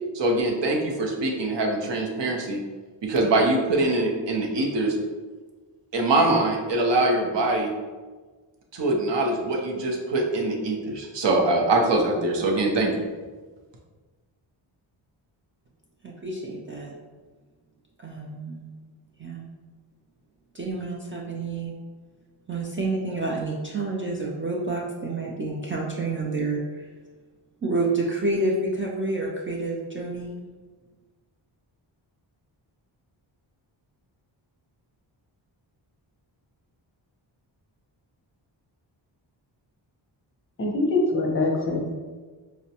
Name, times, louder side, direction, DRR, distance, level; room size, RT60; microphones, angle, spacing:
voice 1, 0.1-2.6 3.0-5.0 5.9-7.7 8.7-12.9, right 2 dB, 60° right, 1 dB, 0.8 m, -23 dB
voice 2, 16.0-16.9 18.0-18.7 19.2-19.5 20.5-21.7 22.5-26.9 27.6-30.4, right 2 dB, 30° right, -3 dB, 0.3 m, -29 dB
voice 3, 40.6-41.9, left 2 dB, 25° left, 0 dB, 0.6 m, -24 dB
4.8 x 2.1 x 2.8 m, 1.4 s
wide cardioid pair, 120°, 48 cm